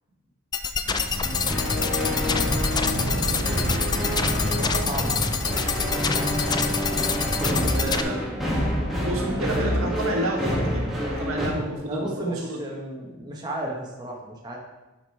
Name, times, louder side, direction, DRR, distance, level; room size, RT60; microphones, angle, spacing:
sound 1, 0.5-8.0, left 5 dB, 20° left, 0.3 m, -27 dB
sound 2, 0.8-5.9, right 1 dB, 45° right, 2.1 m, -32 dB
sound 3, 1.2-11.5, equal, ahead, 1.7 m, -27 dB
voice 1, 1.7-2.4 4.2-5.1 5.9-6.6 9.2-9.9 11.8-14.6, right 1 dB, 20° right, -3 dB, 1.2 m, -35 dB
voice 2, 7.7-8.2 8.9-12.7, right 1 dB, 75° right, -1 dB, 1.8 m, -30 dB
10.5 x 5.1 x 4.6 m, 1.1 s
head